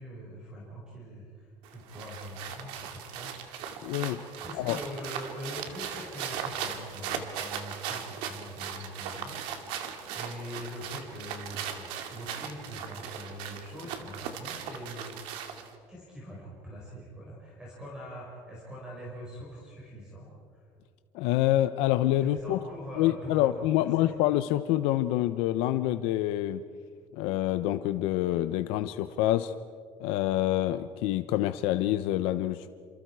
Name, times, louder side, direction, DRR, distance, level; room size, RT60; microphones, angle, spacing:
voice 1, 0.0-4.0 4.4-9.4 9.6-15.4 15.9-20.7 22.2-24.2, equal, 10° right, -5 dB, 5.2 m, -43 dB
sound 1, 1.6-15.7, right 8 dB, 75° right, 2.4 m, -38 dB
voice 2, 3.8-4.2 4.6-4.8 21.1-22.6 23.0-26.6 27.1-29.5 30.0-32.7, left 14 dB, 80° left, 11 dB, 0.8 m, -27 dB
28.5 x 27.5 x 4.8 m, 2.1 s
cardioid pair, 180°, 9 cm